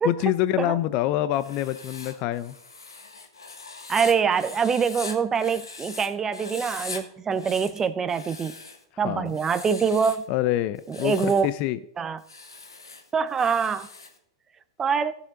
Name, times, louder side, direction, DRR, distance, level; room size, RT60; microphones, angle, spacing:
voice 1, 0.0-2.6 9.0-9.3 10.3-11.8, left 13 dB, 45° left, 15 dB, 0.5 m, -26 dB
Writing, 1.3-6.1 6.3-7.0 7.3-8.8 9.3-10.3 10.8-11.5 12.2-14.2, left 4 dB, 85° left, 1.4 m, -41 dB
voice 2, 3.9-8.5 9.0-10.2 10.9-11.5 12.0-12.2 13.1-13.9 14.8-15.1, right 6 dB, 20° right, 12 dB, 0.7 m, -24 dB
15.5 x 6.9 x 3.7 m, 0.68 s
hypercardioid pair, 105°, 2 cm